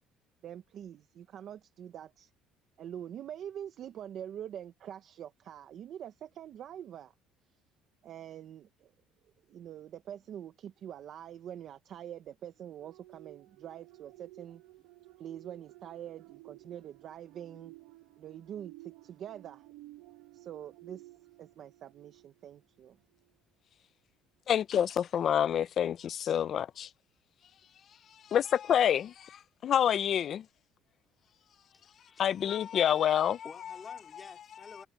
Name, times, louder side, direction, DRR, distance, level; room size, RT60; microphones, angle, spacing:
voice 1, 0.4-2.3 2.8-7.1 8.0-8.9 9.5-14.6 15.2-17.7 18.2-19.6 20.3-21.1 21.4-23.0, right 10 dB, 45° right, 0.9 m, -45 dB
sound 1, 12.8-22.7 23.1-23.3, right 18 dB, 85° right, 1.2 m, -54 dB
voice 2, 24.5-26.9 28.3-30.4 32.2-33.5, left 9 dB, 40° left, 0.5 m, -27 dB
voice 3, 31.7-32.2 33.4-34.9, left 5 dB, 20° left, 3.6 m, -50 dB
cardioid pair, 150°, 0 cm